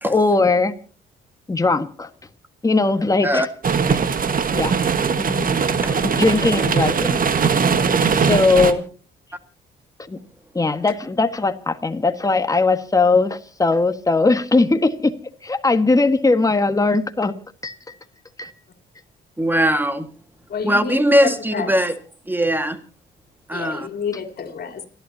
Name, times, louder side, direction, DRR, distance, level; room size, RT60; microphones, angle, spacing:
voice 1, 0.0-0.7 1.5-2.1 2.6-3.4 4.5-4.7 5.2-5.4 6.0-7.2 8.2-8.8 10.1-10.2 10.5-15.1 15.4-17.3 17.6-17.7 18.4-18.5, left 3 dB, 15° left, 8 dB, 1.6 m, -19 dB
sound 1, 3.6-8.7, right 6 dB, 45° right, 1.6 m, -20 dB
voice 2, 8.0-8.4 20.5-21.0 21.5-21.7 23.5-24.8, left 5 dB, 50° left, 7 dB, 3.6 m, -30 dB
voice 3, 19.4-20.1 20.6-21.9 22.3-22.8 23.5-23.9, equal, 10° right, 9 dB, 1.8 m, -20 dB
30.0 x 12.0 x 2.8 m, 0.39 s
cardioid pair, 90°, 20 cm